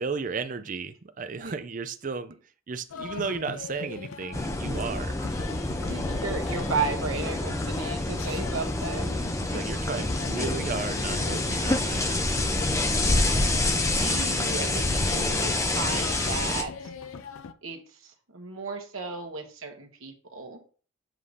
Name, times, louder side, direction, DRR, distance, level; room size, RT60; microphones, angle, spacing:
voice 1, 0.0-2.3 2.7-5.2 9.5-12.3, right 4 dB, 40° right, 0.4 m, -34 dB
sound 1, 2.9-17.5, left 5 dB, 85° left, 0.5 m, -41 dB
sound 2, 4.3-16.6, left 2 dB, 15° left, 0.5 m, -27 dB
voice 2, 5.8-9.3 13.9-16.7 17.6-20.6, right 4 dB, 85° right, 1.2 m, -34 dB
7.5 x 2.7 x 4.9 m
head